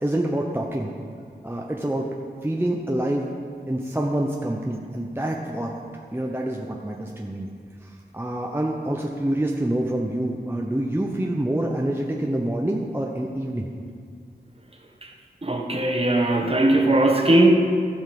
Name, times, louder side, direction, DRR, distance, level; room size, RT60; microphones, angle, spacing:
voice 1, 0.0-0.9 1.4-2.1 2.4-3.3 3.7-5.7 6.1-7.5 7.8-13.7, right 1 dB, 10° right, -1 dB, 0.8 m, -26 dB
voice 2, 15.4-17.5, right 1 dB, 35° right, 1 dB, 1.4 m, -19 dB
15.5 x 5.4 x 5.3 m, 2.2 s
wide cardioid pair, 50°, 18 cm